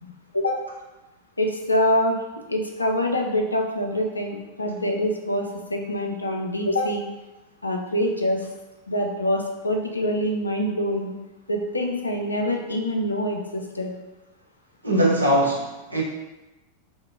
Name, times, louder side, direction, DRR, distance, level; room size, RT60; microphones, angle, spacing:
voice 1, 0.0-0.6 1.4-2.2 2.5-7.1 7.6-8.5 8.9-11.1 11.5-13.9, left 1 dB, 80° left, 2 dB, 0.4 m, -25 dB
voice 2, 14.8-16.0, right 1 dB, 85° right, -3 dB, 0.6 m, -21 dB
2.8 x 2.4 x 2.4 m, 1.1 s
figure-of-eight pair, 90°, 0 cm